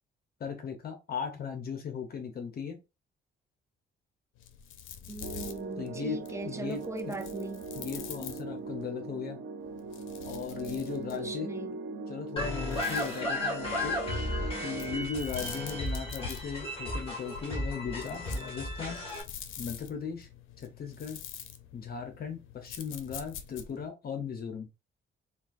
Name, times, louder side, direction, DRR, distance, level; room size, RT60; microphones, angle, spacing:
voice 1, 0.4-2.8 5.8-7.1 7.8-9.4 10.3-11.5 12.1-14.0 14.6-19.0 19.6-20.3 20.6-21.2 21.7-24.7, left 6 dB, 50° left, 0.8 m, -37 dB
sound 1, 4.4-8.8 9.6-11.4 12.5-13.3 14.7-23.9, left 9 dB, 85° left, 0.5 m, -46 dB
voice 2, 5.1-7.6 11.1-11.8, right 2 dB, 15° right, 0.6 m, -40 dB
sound 2, 5.2-15.1, right 3 dB, 90° right, 0.6 m, -40 dB
sound 3, 12.4-19.2, left 1 dB, 30° left, 1.7 m, -34 dB
3.8 x 2.3 x 2.5 m
cardioid pair, 90°, 20 cm